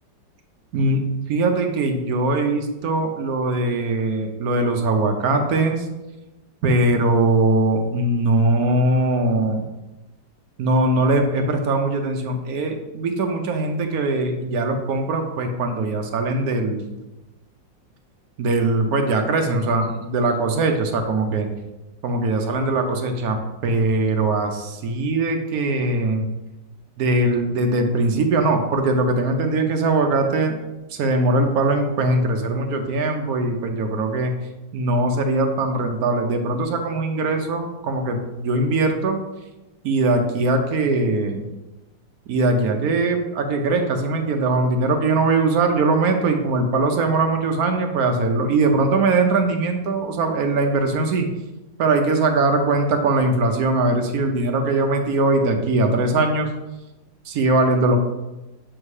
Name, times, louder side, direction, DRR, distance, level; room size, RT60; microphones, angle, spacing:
voice 1, 0.7-1.0 1.3-5.9 6.6-9.7 10.6-16.9 18.4-21.5 22.0-23.4 23.6-26.3 27.0-30.6 30.9-34.3 34.7-39.2 39.8-41.4 42.3-51.3 51.8-56.5 57.3-58.0, right 2 dB, 65° right, 4 dB, 1.0 m, -21 dB
7.3 x 2.7 x 4.7 m, 1.0 s
omnidirectional pair, 2.0 m